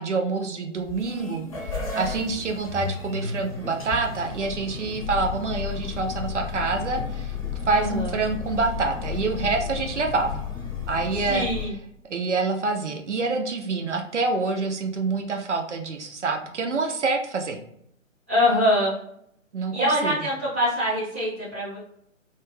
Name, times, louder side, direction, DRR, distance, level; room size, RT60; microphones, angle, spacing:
voice 1, 0.0-1.5 1.9-7.4 7.7-10.4 10.9-11.5 12.1-17.6 19.5-20.1, right 3 dB, 65° right, 4 dB, 0.5 m, -26 dB
sound 1, 0.8-11.6, left 6 dB, 30° left, 0.7 m, -33 dB
voice 2, 7.7-8.2 11.1-11.7 18.3-19.0 19.7-21.8, left 1 dB, 10° right, -13 dB, 0.5 m, -24 dB
2.3 x 2.3 x 3.1 m, 0.72 s
figure-of-eight pair, 140°, 39 cm